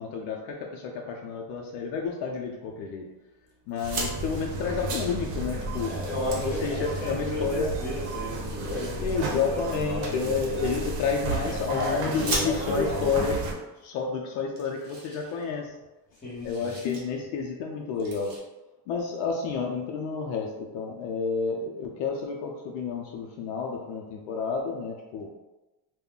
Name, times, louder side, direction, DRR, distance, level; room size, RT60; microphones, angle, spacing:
voice 1, 0.0-3.1 3.7-5.9 6.4-7.8 9.0-15.7 16.4-18.3 18.9-25.3, left 5 dB, 80° left, 0 dB, 0.6 m, -30 dB
sound 1, 3.7-4.1 5.5-5.6 5.9-7.3 8.4-9.2 10.5-11.4 12.1-13.0 13.8-13.9 14.2-14.3 14.6-15.9 16.1-17.0 17.4-17.6 18.0-18.4, right 2 dB, 45° right, 0.9 m, -37 dB
sound 2, 3.8-13.5, right 2 dB, 85° right, 0.8 m, -33 dB
voice 2, 5.8-10.4 11.4-13.4 16.1-16.8, left 1 dB, 20° left, -5 dB, 1.1 m, -34 dB
2.3 x 2.2 x 3.6 m, 1.1 s
cardioid pair, 140°, 47 cm